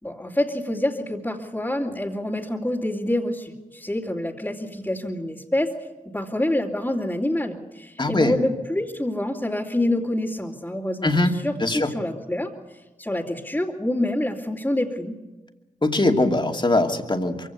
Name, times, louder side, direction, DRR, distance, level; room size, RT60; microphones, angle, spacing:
voice 1, 0.0-5.7 6.1-11.1 11.4-12.5 13.0-15.2, left 1 dB, 10° left, -6 dB, 2.8 m, -26 dB
voice 2, 8.0-8.3 11.0-11.3 11.6-11.9 15.8-17.5, left 2 dB, 35° left, 3 dB, 2.7 m, -21 dB
23.0 x 16.5 x 8.4 m, 1.1 s
cardioid pair, 45°, 14 cm